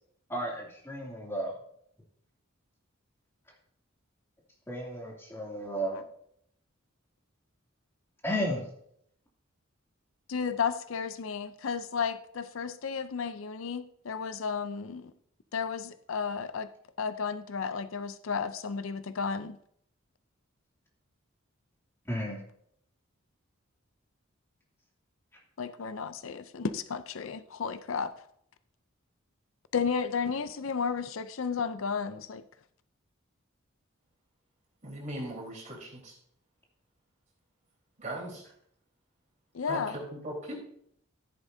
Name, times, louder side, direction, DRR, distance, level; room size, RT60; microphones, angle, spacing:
voice 1, 0.3-1.5 4.7-6.0 8.2-8.7 22.1-22.4, equal, 10° left, -2 dB, 2.7 m, -33 dB
voice 2, 10.3-15.1 15.5-16.7 17.0-19.6 25.6-28.1 29.7-32.4 39.5-40.0, left 6 dB, 75° left, 12 dB, 0.5 m, -33 dB
voice 3, 34.8-36.1 38.0-38.4 39.7-40.6, right 1 dB, 35° right, -2 dB, 4.2 m, -39 dB
13.5 x 11.0 x 2.7 m, 0.69 s
head